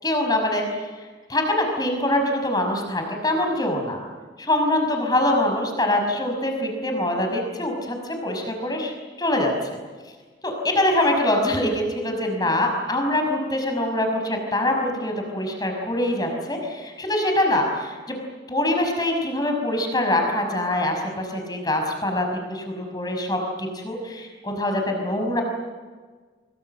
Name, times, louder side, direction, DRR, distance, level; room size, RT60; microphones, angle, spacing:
voice 1, 0.0-1.0 1.3-4.0 4.5-9.5 10.4-18.2 18.5-25.4, left 1 dB, 20° left, 3 dB, 5.6 m, -24 dB
25.0 x 24.5 x 7.8 m, 1.4 s
head